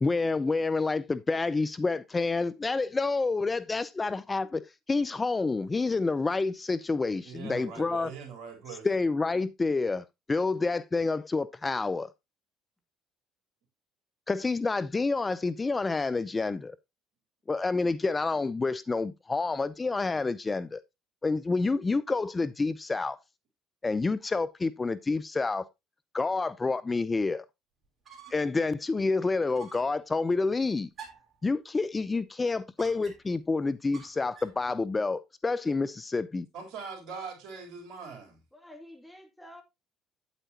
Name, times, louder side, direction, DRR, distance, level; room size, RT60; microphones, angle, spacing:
voice 1, 0.0-8.1 8.8-12.1 14.3-16.8 17.5-20.8 21.2-23.2 23.8-25.7 26.1-27.4 28.3-30.9 31.4-36.5, left 3 dB, 25° left, 0.5 m, -28 dB
voice 2, 7.2-8.9 36.5-38.4, right 5 dB, 65° right, 3.7 m, -41 dB
sound 1, 27.8-28.6 28.9-29.0 29.5-30.0 30.9-31.4 32.8-33.4 33.9-34.6, right 7 dB, 45° right, 3.3 m, -49 dB
voice 3, 38.5-39.6, left 1 dB, 5° left, 2.4 m, -49 dB
9.0 x 8.3 x 2.8 m
hypercardioid pair, 65°, 0 cm